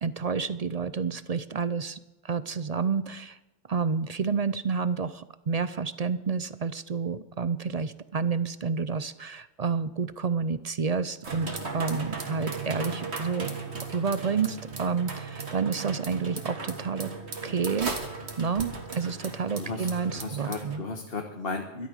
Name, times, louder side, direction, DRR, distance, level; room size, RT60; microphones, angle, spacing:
voice 1, 0.0-2.0 2.2-3.4 3.7-13.6 13.9-17.1 17.4-17.9 18.4-20.8, right 5 dB, 45° right, 14 dB, 0.5 m, -29 dB
sound 1, 11.2-20.8, right 4 dB, 70° right, 2.1 m, -37 dB
voice 2, 19.6-21.9, left 3 dB, 55° left, 3 dB, 1.5 m, -35 dB
13.5 x 12.5 x 6.4 m, 1.1 s
omnidirectional pair, 1.2 m